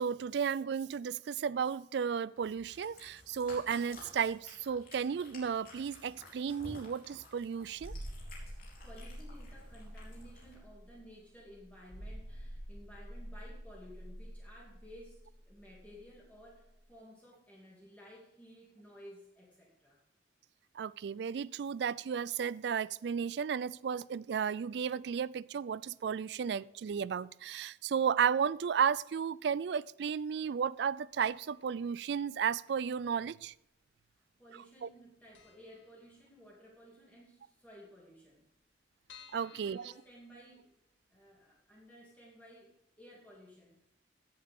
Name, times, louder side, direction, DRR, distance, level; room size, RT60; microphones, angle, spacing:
voice 1, 0.0-7.9 20.8-33.5 34.8-34.9 39.3-39.9, right 7 dB, 65° right, 0.3 m, -33 dB
Cat, 2.4-10.5, left 2 dB, 50° left, 3.9 m, -54 dB
sound 1, 7.7-16.2 16.4-16.6, equal, 40° right, 2.1 m, -47 dB
voice 2, 8.5-20.0 34.4-38.5 39.3-40.7 41.1-43.8, equal, 10° left, 2.5 m, -55 dB
sound 2, 31.3-31.8 32.1-32.2 33.1-33.8 34.1-34.2 34.5-34.6 35.0-35.1 35.3-36.7 37.0-37.1 37.4-37.5 37.7-37.8 38.3-40.9 41.4-41.5 41.8-41.9, left 8 dB, 85° left, 1.8 m, -59 dB
16.0 x 7.7 x 3.6 m
head